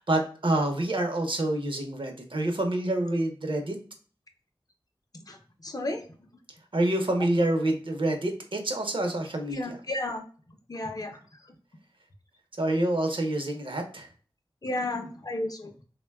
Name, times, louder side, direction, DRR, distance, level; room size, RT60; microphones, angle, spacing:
voice 1, 0.0-3.8 6.7-9.8 12.6-14.1, right 1 dB, 60° right, 3 dB, 0.6 m, -27 dB
voice 2, 5.6-6.0 9.5-10.2 10.7-11.2 14.6-15.7, left 2 dB, 40° left, 4 dB, 0.4 m, -32 dB
3.3 x 2.1 x 2.2 m, 0.41 s
wide cardioid pair, 65°, 10 cm